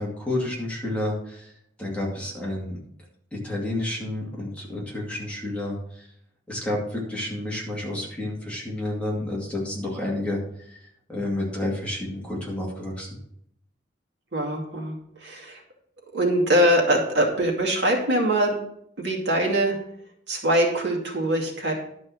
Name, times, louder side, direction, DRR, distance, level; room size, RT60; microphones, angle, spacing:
voice 1, 0.0-1.5 1.8-2.8 3.3-5.8 6.5-10.4 11.1-13.1, left 1 dB, 5° left, -4 dB, 2.4 m, -30 dB
voice 2, 14.3-14.9 15.2-15.6 16.1-18.5 19.0-19.8 20.3-21.7, right 1 dB, 65° right, 0 dB, 2.3 m, -22 dB
11.5 x 5.4 x 6.2 m, 0.71 s
head